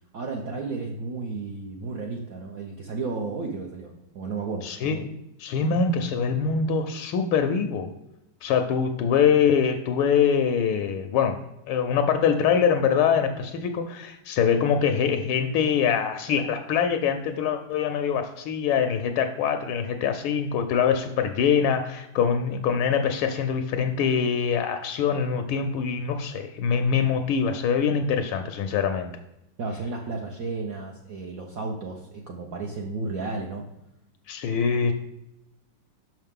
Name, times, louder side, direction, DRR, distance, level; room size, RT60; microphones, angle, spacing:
voice 1, 0.1-4.7 29.6-33.7, right 3 dB, 80° right, 0 dB, 0.8 m, -33 dB
voice 2, 4.6-5.0 5.4-7.9 8.4-11.4 11.7-29.1 34.3-34.9, left 7 dB, 80° left, 6 dB, 1.3 m, -24 dB
6.1 x 5.6 x 3.6 m, 0.87 s
omnidirectional pair, 2.4 m